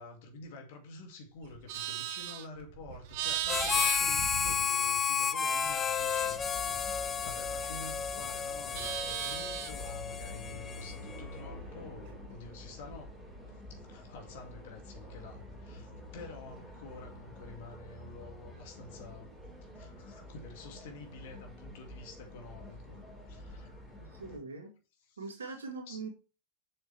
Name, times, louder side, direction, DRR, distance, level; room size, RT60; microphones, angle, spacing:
voice 1, 0.0-13.1 13.7-19.3 19.7-23.0 23.3-23.8 25.1-25.4 25.9-26.1, left 3 dB, 50° left, 2.4 m, -49 dB
Livestock farm animals working animals, 1.4-5.1 5.5-8.0 8.3-9.9, right 12 dB, 50° right, 0.8 m, -39 dB
Harmonica, 3.5-11.2, left 7 dB, 20° left, 0.7 m, -32 dB
sound 1, 6.1-24.4, left 1 dB, 5° right, 3.9 m, -48 dB
voice 2, 24.1-24.7 25.2-26.1, right 4 dB, 70° right, 2.1 m, -41 dB
7.5 x 6.3 x 3.4 m
figure-of-eight pair, 90°, 0 cm